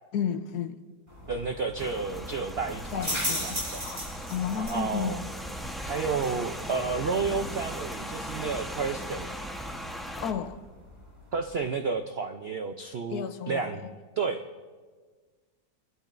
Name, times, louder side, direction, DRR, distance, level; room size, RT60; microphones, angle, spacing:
voice 1, 0.1-0.8 2.9-5.3 10.2-10.6 13.1-13.9, left 7 dB, 75° left, 10 dB, 1.2 m, -33 dB
sound 1, 1.1-11.7, equal, 20° right, 5.2 m, -39 dB
voice 2, 1.3-3.0 3.4-3.8 4.5-5.2 5.8-9.3 11.3-13.9 14.2-14.4, right 4 dB, 70° right, 5 dB, 0.6 m, -31 dB
Rain, 1.8-10.3, equal, ahead, 0.7 m, -38 dB
26.0 x 12.0 x 2.6 m, 1.4 s
omnidirectional pair, 1.8 m